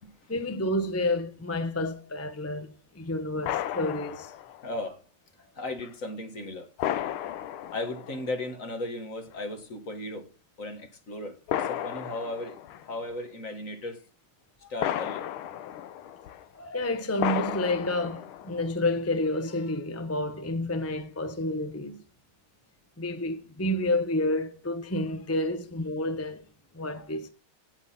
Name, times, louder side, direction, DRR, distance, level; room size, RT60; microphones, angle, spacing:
voice 1, 0.3-4.3 14.6-14.7 16.5-22.0 23.0-26.4 26.7-27.3, left 1 dB, 15° left, 0.5 m, -30 dB
sound 1, 3.4-4.6 5.8-5.9 6.8-8.5 9.3-9.4 11.5-12.9 14.8-16.5 17.2-18.7, left 11 dB, 80° left, 1.6 m, -33 dB
voice 2, 4.6-5.0 5.6-6.7 7.7-10.3 10.6-14.0 14.7-15.3, left 2 dB, 40° left, 1.8 m, -36 dB
16.5 x 5.7 x 4.3 m
omnidirectional pair, 2.3 m